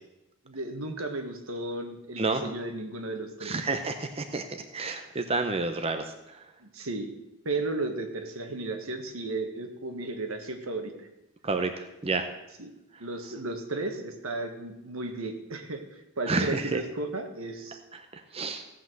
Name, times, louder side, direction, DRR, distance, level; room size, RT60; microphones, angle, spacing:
voice 1, 0.4-3.5 6.6-7.1 7.4-11.1 12.6-12.7 13.0-17.8, right 2 dB, 75° right, 6 dB, 1.6 m, -34 dB
voice 2, 3.4-4.4 4.7-6.0 11.4-11.7 12.0-12.3 16.3-16.8 18.3-18.6, right 3 dB, 30° right, 6 dB, 0.7 m, -29 dB
15.5 x 5.8 x 7.7 m, 0.96 s
head